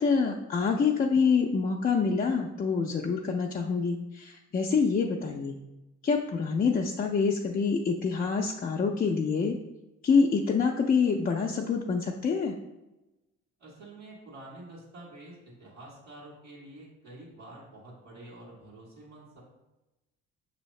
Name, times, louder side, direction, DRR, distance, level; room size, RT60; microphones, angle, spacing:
voice 1, 0.0-5.6 6.0-9.6 10.0-12.6, left 5 dB, 30° left, 0 dB, 0.4 m, -26 dB
voice 2, 13.6-19.4, right 2 dB, 85° right, -9 dB, 1.5 m, -48 dB
6.1 x 2.7 x 3.1 m, 0.99 s
cardioid pair, 90°, 30 cm